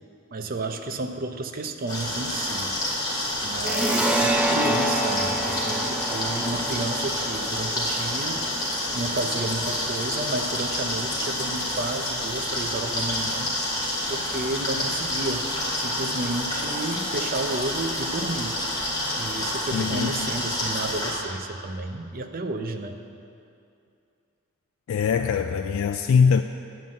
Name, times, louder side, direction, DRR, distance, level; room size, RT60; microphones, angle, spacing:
voice 1, 0.3-2.7 3.4-8.4 8.9-13.5 14.1-18.6 19.2-23.0, right 2 dB, 45° right, 6 dB, 0.6 m, -31 dB
sound 1, 1.9-21.1, left 1 dB, 20° left, 2.4 m, -28 dB
sound 2, 3.6-10.8, right 1 dB, 5° right, 0.6 m, -28 dB
voice 2, 19.7-20.3 24.9-26.4, left 6 dB, 70° left, 7 dB, 0.3 m, -22 dB
9.3 x 5.5 x 7.4 m, 2.5 s
head